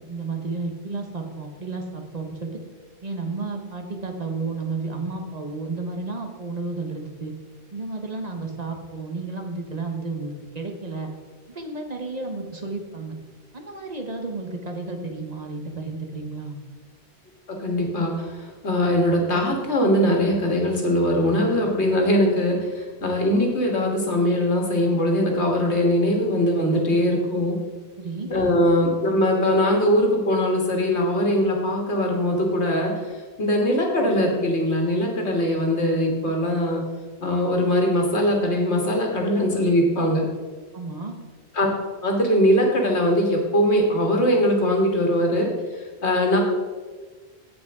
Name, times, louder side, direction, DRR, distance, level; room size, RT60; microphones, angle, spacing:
voice 1, 0.1-2.5 3.0-7.3 7.7-11.1 11.5-13.2 13.5-16.6 28.0-28.3 40.7-41.2, right 3 dB, 40° right, 3 dB, 1.0 m, -32 dB
voice 2, 17.5-27.6 28.3-36.8 37.2-40.2 41.5-41.7 42.0-45.5 46.0-46.4, equal, 85° left, 1 dB, 1.9 m, -21 dB
15.5 x 5.3 x 3.6 m, 1.4 s
omnidirectional pair, 1.1 m